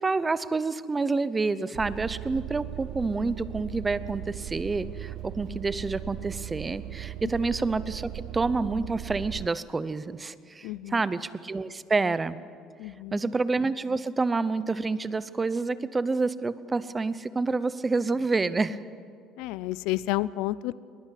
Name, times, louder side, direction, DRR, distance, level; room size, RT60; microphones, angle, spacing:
voice 1, 0.0-12.4 13.1-18.8, right 3 dB, 15° right, 15 dB, 0.7 m, -28 dB
sound 1, 1.7-9.5, right 15 dB, 60° right, 0.5 m, -38 dB
voice 2, 10.6-11.0 12.8-13.2 19.4-20.7, left 17 dB, 85° left, 19 dB, 0.5 m, -31 dB
21.0 x 21.0 x 8.4 m, 2.3 s
cardioid pair, 155°, 0 cm